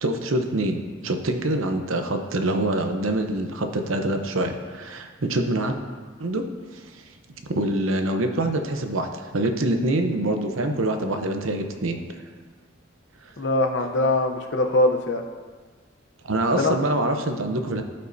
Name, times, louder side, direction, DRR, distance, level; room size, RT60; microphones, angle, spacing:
voice 1, 0.0-5.8 6.2-6.4 7.5-12.0 16.2-17.8, right 1 dB, 80° right, 5 dB, 0.8 m, -25 dB
voice 2, 13.4-15.2 16.5-16.7, left 2 dB, 60° left, 3 dB, 0.8 m, -22 dB
15.5 x 5.3 x 2.7 m, 1.5 s
head